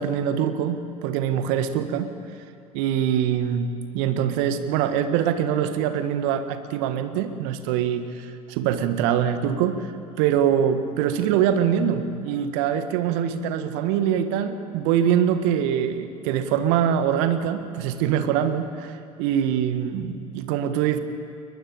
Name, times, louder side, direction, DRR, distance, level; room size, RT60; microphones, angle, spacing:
voice 1, 0.0-2.1 2.7-9.9 10.2-18.9 19.2-21.0, right 9 dB, 60° right, 9 dB, 1.6 m, -24 dB
22.0 x 20.5 x 8.7 m, 2.6 s
figure-of-eight pair, 70°, 20 cm